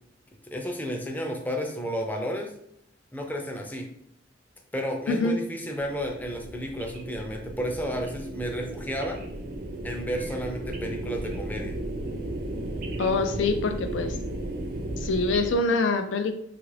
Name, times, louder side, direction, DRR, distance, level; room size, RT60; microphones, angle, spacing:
voice 1, 0.4-2.5 3.1-3.9 4.7-9.2 9.8-11.8, equal, 10° left, 1 dB, 0.4 m, -32 dB
voice 2, 5.1-5.4 13.0-14.2 15.0-16.3, left 3 dB, 80° left, 7 dB, 0.4 m, -25 dB
sound 1, 5.8-15.5, right 1 dB, 55° right, 0.5 m, -35 dB
2.8 x 2.4 x 3.2 m, 0.72 s
head